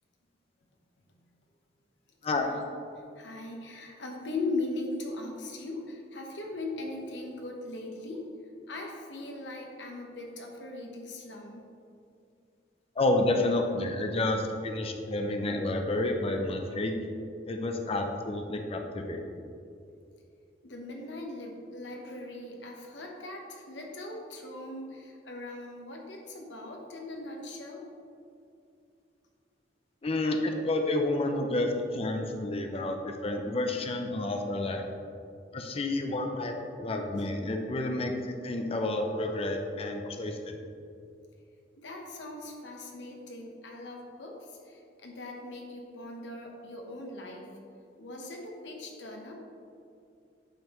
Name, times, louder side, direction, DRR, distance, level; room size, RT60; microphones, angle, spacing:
voice 1, 3.2-8.3 8.7-11.7 20.6-27.8 37.2-37.3 41.7-47.6 48.0-49.3, left 2 dB, 75° left, 1 dB, 1.1 m, -39 dB
voice 2, 13.0-17.0 17.5-19.2 30.0-34.8 35.5-40.6, left 2 dB, 35° left, 3 dB, 0.5 m, -30 dB
8.9 x 5.4 x 3.0 m, 2.5 s
head